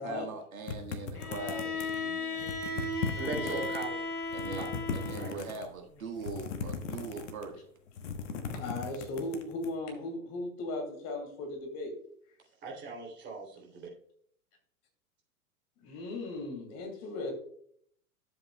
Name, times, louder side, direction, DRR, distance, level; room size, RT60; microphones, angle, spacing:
voice 1, 0.0-2.4 3.3-3.7 4.3-7.6, right 4 dB, 65° right, 3 dB, 1.6 m, -41 dB
sound 1, 0.7-2.0 2.4-3.9 4.2-5.7 6.2-7.5 7.9-9.7, left 6 dB, 55° left, 1.2 m, -37 dB
Bowed string instrument, 1.1-5.4, left 2 dB, 90° left, 1.1 m, -36 dB
voice 2, 3.2-4.0 4.5-4.7 5.2-5.3 12.6-13.9, right 4 dB, 25° right, -2 dB, 3.1 m, -39 dB
voice 3, 8.5-11.9 15.8-17.3, left 2 dB, 35° left, 2 dB, 2.5 m, -37 dB
11.5 x 7.6 x 2.2 m, 0.64 s
figure-of-eight pair, 95°, 44 cm